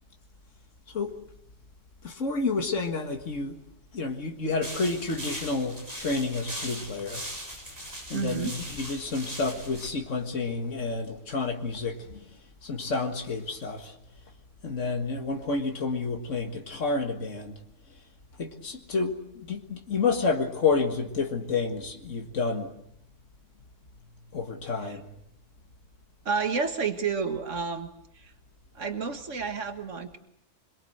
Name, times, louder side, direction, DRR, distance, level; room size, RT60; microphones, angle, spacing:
voice 1, 2.0-3.6 3.9-7.2 8.1-12.2 12.6-13.9 14.6-17.6 18.4-22.7 24.3-25.1, left 4 dB, 90° left, 4 dB, 2.1 m, -29 dB
sound 1, 4.6-9.9, equal, 15° right, 7.2 m, -39 dB
voice 2, 8.1-8.5 24.8-25.0 26.3-28.3 28.8-30.2, right 5 dB, 90° right, 6 dB, 2.0 m, -30 dB
25.0 x 23.0 x 7.9 m, 0.75 s
omnidirectional pair, 1.2 m